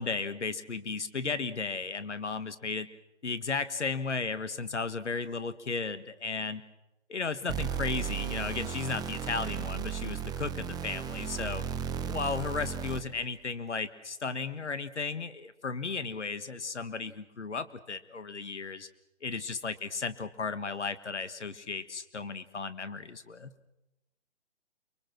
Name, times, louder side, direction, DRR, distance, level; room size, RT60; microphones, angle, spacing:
voice 1, 0.0-2.9 3.2-6.6 7.1-11.6 12.0-18.9 19.2-23.5, left 4 dB, 80° left, 13 dB, 1.7 m, -35 dB
sound 1, 7.5-13.2, right 8 dB, 10° right, 0.9 m, -35 dB
29.5 x 21.5 x 6.2 m, 0.93 s
figure-of-eight pair, 130°, 34 cm